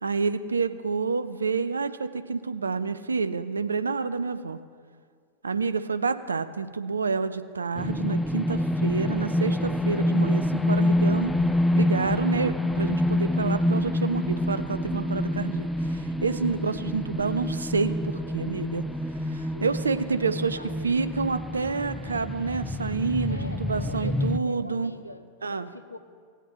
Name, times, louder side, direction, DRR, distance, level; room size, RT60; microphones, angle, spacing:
voice 1, 0.0-4.6 5.4-11.3 11.8-18.8 19.3-20.6 20.8-24.9 25.4-25.7, right 4 dB, 75° right, 11 dB, 0.4 m, -28 dB
sound 1, 7.7-24.4, left 1 dB, 5° left, 0.4 m, -27 dB
voice 2, 19.5-20.7 23.3-26.0, equal, 85° left, 9 dB, 0.6 m, -43 dB
17.5 x 8.1 x 3.0 m, 2.1 s
figure-of-eight pair, 90°, 0 cm